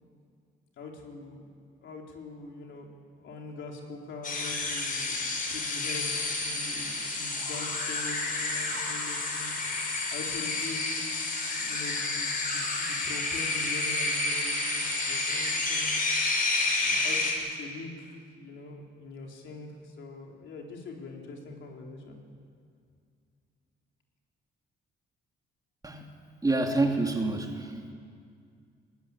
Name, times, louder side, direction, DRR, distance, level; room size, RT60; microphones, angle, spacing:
voice 1, 0.8-1.5 1.8-2.9 3.1-5.2 5.5-9.5 10.1-11.0 11.5-16.0 16.8-22.2, left 3 dB, 70° left, 1 dB, 4.1 m, -43 dB
sound 1, 4.2-17.3, left 3 dB, 45° left, 5.1 m, -30 dB
voice 2, 26.4-27.9, right 2 dB, 20° right, 2 dB, 2.9 m, -27 dB
20.5 x 17.0 x 9.7 m, 2.2 s
cardioid pair, 90°, 20 cm